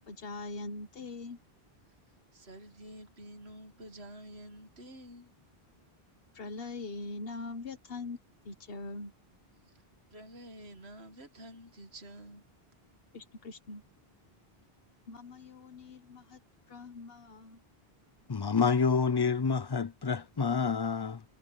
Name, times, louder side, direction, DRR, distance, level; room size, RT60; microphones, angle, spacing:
voice 1, 0.0-1.4 6.3-8.2 8.4-9.1 13.1-13.8 15.1-16.4 16.7-17.6, left 3 dB, 65° left, 1.5 m, -42 dB
voice 2, 2.3-5.3 9.6-9.8 10.1-12.5, right 1 dB, 85° right, 2.0 m, -49 dB
voice 3, 18.3-21.2, left 5 dB, 30° left, 0.5 m, -28 dB
omnidirectional pair, 1.0 m